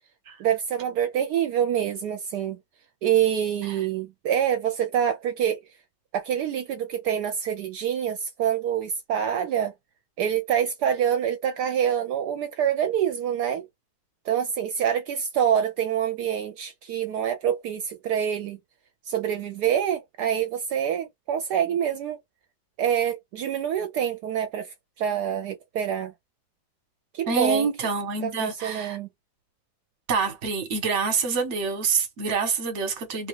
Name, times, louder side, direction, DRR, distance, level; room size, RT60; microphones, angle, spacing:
voice 1, 0.4-2.6 3.0-5.6 6.1-9.7 10.2-13.6 14.2-18.6 19.1-22.2 22.8-26.1 27.1-27.7 28.2-29.1, right 9 dB, 75° right, 1.1 m, -26 dB
voice 2, 27.3-29.0 30.1-33.3, right 5 dB, 50° right, 1.3 m, -26 dB
3.2 x 2.3 x 3.1 m
omnidirectional pair, 1.8 m